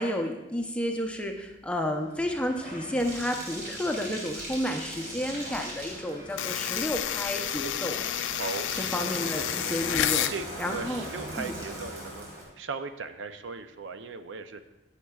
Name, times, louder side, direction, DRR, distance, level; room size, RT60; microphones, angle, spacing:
voice 1, 0.0-8.0 8.7-10.3 10.6-11.0 11.4-11.5, equal, 5° left, 3 dB, 0.6 m, -31 dB
Bathtub (filling or washing), 1.1-12.4, right 1 dB, 50° right, 2.8 m, -40 dB
sound 1, 6.4-10.4, left 10 dB, 80° left, 0.4 m, -30 dB
voice 2, 10.3-12.3 12.6-14.6, right 4 dB, 85° right, 9 dB, 0.5 m, -37 dB
14.5 x 6.6 x 2.3 m, 0.99 s
head